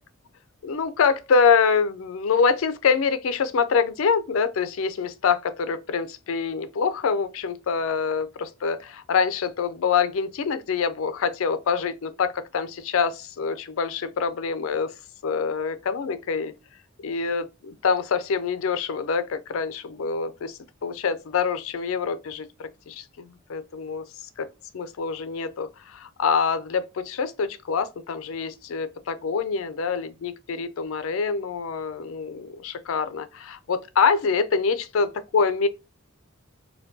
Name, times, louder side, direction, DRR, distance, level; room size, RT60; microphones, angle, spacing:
voice 1, 0.6-14.9 15.2-16.5 17.0-24.0 24.4-24.5 24.7-35.7, left 5 dB, 75° left, 0.4 m, -25 dB
4.3 x 2.2 x 2.6 m
head